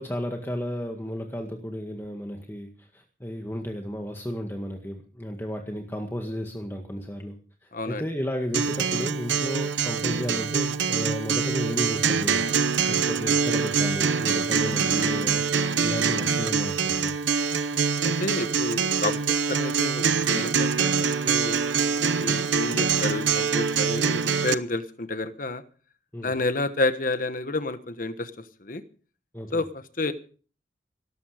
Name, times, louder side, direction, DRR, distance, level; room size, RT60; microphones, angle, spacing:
voice 1, 0.0-7.3 7.6-17.1 26.1-26.3 29.3-29.6, equal, 15° left, 3 dB, 1.8 m, -33 dB
voice 2, 7.7-8.1 18.0-21.6 22.2-25.6 26.2-28.8 29.5-30.1, left 2 dB, 45° left, 10 dB, 1.2 m, -30 dB
Acoustic guitar, 8.5-24.5, right 6 dB, 85° right, 0.9 m, -24 dB
18.0 x 14.0 x 5.0 m, 0.40 s
head